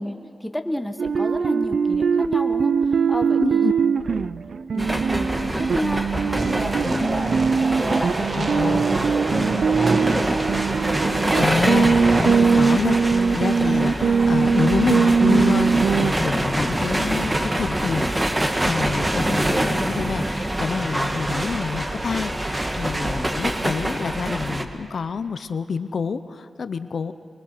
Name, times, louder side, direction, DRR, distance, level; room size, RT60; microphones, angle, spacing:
voice 1, 0.0-2.8 3.1-3.7 4.7-7.4 7.7-10.5 19.1-19.9 23.1-23.4, left 1 dB, 5° left, 6 dB, 1.2 m, -31 dB
sound 1, 1.0-16.1, right 5 dB, 65° right, 0.5 m, -21 dB
voice 2, 3.4-3.7 8.4-8.8 11.1-27.1, left 5 dB, 65° left, 11 dB, 0.6 m, -28 dB
sound 2, 4.8-24.6, right 1 dB, 20° right, 1.4 m, -25 dB
sound 3, 6.3-12.3, right 3 dB, 50° right, 1.5 m, -28 dB
24.0 x 21.5 x 6.6 m, 2.3 s
wide cardioid pair, 90°, 0 cm